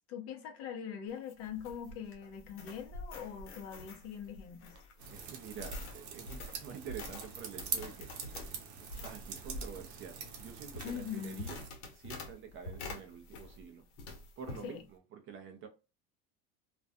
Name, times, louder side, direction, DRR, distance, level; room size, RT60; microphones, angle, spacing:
voice 1, 0.1-4.8 10.8-11.5 14.6-14.8, left 8 dB, 45° left, 0.6 m, -42 dB
sound 1, 1.1-13.7 14.0-14.7, left 2 dB, 75° left, 0.9 m, -46 dB
sound 2, 5.0-11.7, right 7 dB, 75° right, 0.8 m, -44 dB
voice 2, 5.1-8.1 9.0-11.6 11.9-13.8 14.4-14.8 15.1-15.7, right 7 dB, 40° right, 0.5 m, -47 dB
2.4 x 2.1 x 2.5 m
cardioid pair, 145°, 33 cm